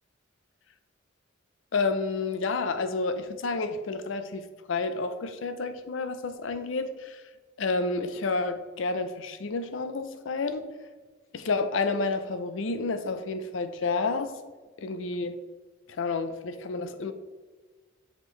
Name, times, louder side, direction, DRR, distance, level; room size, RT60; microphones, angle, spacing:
voice 1, 1.7-7.2 7.6-10.7 11.3-14.3 14.8-15.4 16.0-17.1, left 3 dB, 75° left, 10 dB, 0.5 m, -30 dB
6.5 x 5.2 x 3.2 m, 1.4 s
head